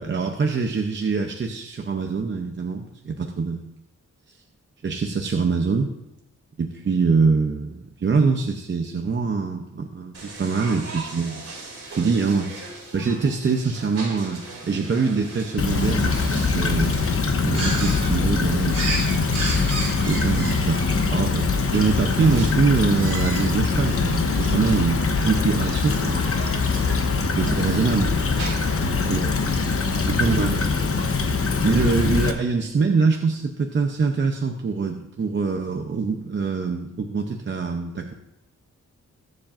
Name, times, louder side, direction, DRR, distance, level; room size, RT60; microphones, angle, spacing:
voice 1, 0.0-3.6 4.3-4.4 4.8-5.9 6.6-11.5 11.9-12.5 12.9-17.0 17.4-19.4 20.1-26.4 27.2-28.1 29.1-29.3 30.1-30.6 31.6-38.1, right 4 dB, 40° right, 3 dB, 0.7 m, -24 dB
sound 1, 10.1-29.0, right 3 dB, 55° right, 3.0 m, -36 dB
Stream / Trickle dribble, 15.6-32.3, left 4 dB, 50° left, 1.0 m, -23 dB
21.0 x 7.3 x 2.6 m, 0.86 s
wide cardioid pair, 170°, 30 cm